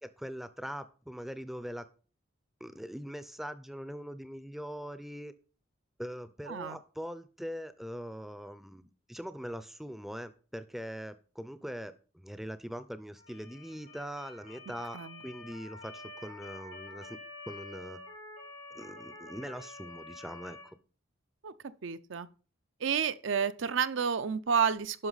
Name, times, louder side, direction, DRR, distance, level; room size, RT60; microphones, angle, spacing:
voice 1, 0.0-1.8 2.6-5.3 6.0-17.2 17.5-18.0 18.7-20.8, equal, ahead, 0.5 m, -42 dB
Motor vehicle (road) / Siren, 13.2-20.6, left 2 dB, 90° left, 4.3 m, -48 dB
voice 2, 21.8-22.3 22.8-25.1, right 6 dB, 65° right, 0.5 m, -30 dB
11.0 x 5.9 x 4.0 m
head